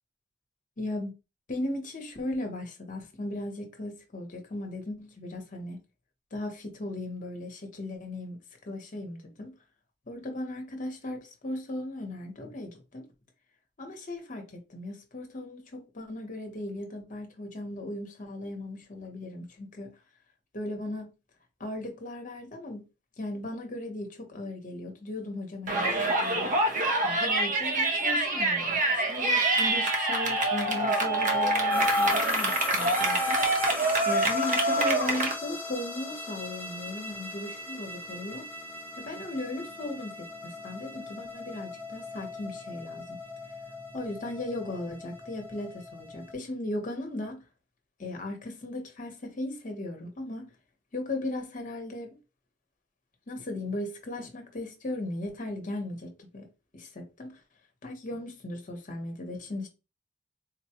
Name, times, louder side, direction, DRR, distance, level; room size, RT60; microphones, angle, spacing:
voice 1, 0.8-1.1 1.5-5.8 6.3-8.4 8.7-9.5 10.1-13.1 13.8-19.9 20.5-21.1 21.6-22.8 23.2-26.5 27.0-33.4 34.0-38.5 39.0-43.2 43.9-47.4 48.0-50.5 50.9-52.2 53.3-56.5 56.7-57.4 57.8-59.7, left 1 dB, 45° left, 0.9 m, -37 dB
Yell, 25.7-35.3, right 2 dB, 45° right, 0.6 m, -26 dB
sound 1, 31.7-46.3, left 3 dB, 10° left, 0.5 m, -39 dB
4.0 x 2.2 x 2.8 m
head